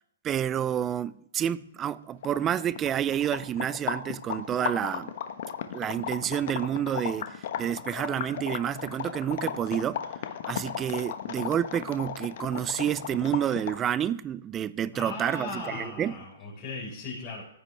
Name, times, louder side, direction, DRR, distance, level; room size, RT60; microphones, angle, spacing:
voice 1, 0.2-5.1 5.7-10.1 10.5-16.2, right 10 dB, 20° right, 0.4 m, -29 dB
sound 1, 2.2-13.9, left 9 dB, 55° left, 1.1 m, -35 dB
voice 2, 14.9-17.4, left 3 dB, 35° left, 4.5 m, -37 dB
15.0 x 8.2 x 3.4 m
hypercardioid pair, 135°, 0 cm